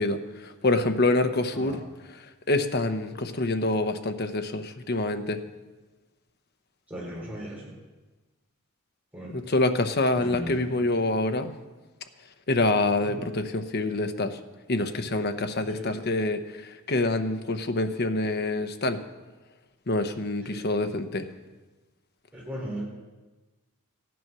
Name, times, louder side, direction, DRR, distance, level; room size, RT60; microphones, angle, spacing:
voice 1, 0.0-1.8 2.5-5.4 9.3-11.5 12.5-14.4 14.7-19.0 19.9-21.2, left 2 dB, 45° left, 8 dB, 0.8 m, -26 dB
voice 2, 6.9-7.6 9.1-9.4 10.2-10.5 13.0-13.2 15.7-16.0 20.5-20.6 22.3-22.8, equal, 5° right, -5 dB, 3.9 m, -37 dB
14.0 x 9.4 x 6.1 m, 1.2 s
head